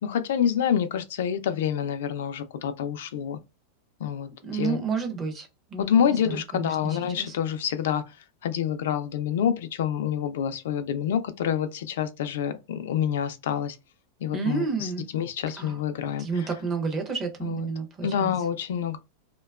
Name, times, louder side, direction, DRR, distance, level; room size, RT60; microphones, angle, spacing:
voice 1, 0.0-3.4 4.0-4.8 5.8-8.0 8.4-13.8 14.2-16.3 17.4-17.6 18.0-19.0, left 8 dB, 70° left, 0.3 m, -27 dB
voice 2, 4.4-7.3 14.3-15.1 15.6-15.8 16.2-18.3, right 4 dB, 20° right, 0.5 m, -31 dB
2.8 x 2.2 x 2.2 m
supercardioid pair, 175°, 0 cm